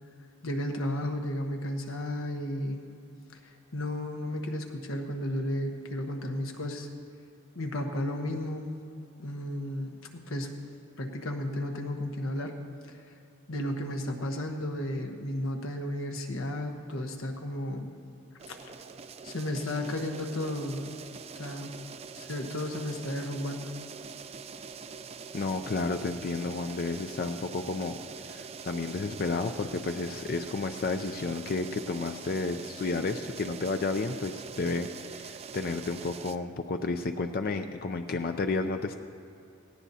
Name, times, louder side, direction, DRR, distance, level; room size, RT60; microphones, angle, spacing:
voice 1, 0.4-2.8 3.4-6.9 7.5-8.7 9.2-10.7 11.0-12.6 12.8-13.1 13.5-17.9 18.5-18.7 19.2-20.9 21.3-21.9 22.1-23.7, left 1 dB, 90° left, 3 dB, 1.2 m, -33 dB
sound 1, 18.4-36.4, right 5 dB, 30° right, 0.4 m, -44 dB
voice 2, 25.3-28.0 28.2-38.9, left 3 dB, 50° left, 6 dB, 0.4 m, -32 dB
17.0 x 17.0 x 2.8 m, 2.6 s
head